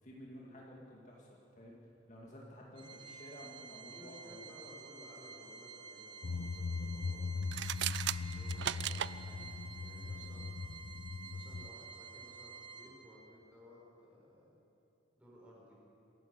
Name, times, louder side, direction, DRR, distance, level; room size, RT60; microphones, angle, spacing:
voice 1, 0.0-1.8 2.1-4.6, equal, 40° left, -3 dB, 2.3 m, -53 dB
Organ, 2.8-13.4, right 5 dB, 25° right, 1.2 m, -51 dB
voice 2, 3.8-7.4 8.3-10.5 11.3-14.5 15.2-15.7, left 1 dB, 5° right, -5 dB, 5.9 m, -58 dB
sound 1, 6.2-11.7, left 4 dB, 65° left, 0.5 m, -40 dB
sound 2, 7.4-9.1, right 11 dB, 65° right, 0.4 m, -36 dB
26.5 x 15.5 x 6.7 m, 2.9 s
head